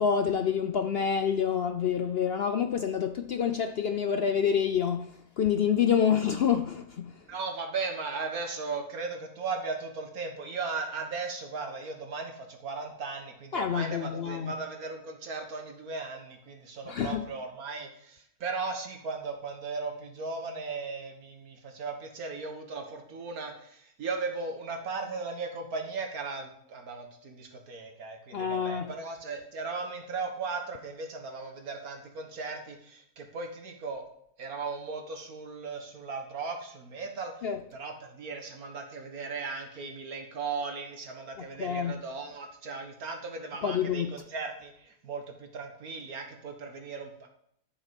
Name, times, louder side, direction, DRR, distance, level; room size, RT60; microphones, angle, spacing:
voice 1, 0.0-7.2 13.5-14.6 16.9-17.2 28.3-28.9 37.4-37.6 41.6-41.9 43.6-44.1, left 7 dB, 60° left, 8 dB, 0.7 m, -27 dB
voice 2, 7.3-34.0 34.4-47.3, right 4 dB, 75° right, 4 dB, 2.0 m, -37 dB
12.0 x 7.3 x 5.3 m, 0.72 s
omnidirectional pair, 1.6 m